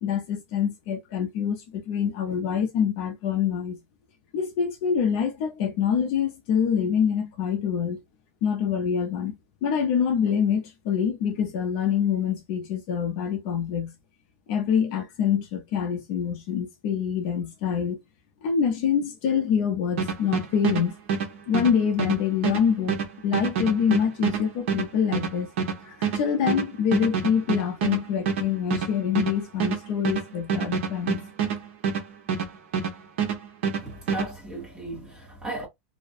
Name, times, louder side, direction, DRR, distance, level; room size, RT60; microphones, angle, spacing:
voice 1, 0.0-3.8 4.3-8.0 8.4-9.3 9.6-13.9 14.5-18.0 18.4-20.9 21.5-23.0 23.2-25.5 25.9-31.2, left 7 dB, 40° left, 0.5 m, -25 dB
sound 1, 20.0-32.9 33.2-34.3, right 6 dB, 60° right, 0.7 m, -27 dB
voice 2, 33.8-35.7, right 2 dB, 5° right, 0.9 m, -35 dB
2.4 x 2.1 x 2.5 m
supercardioid pair, 180°, 7 cm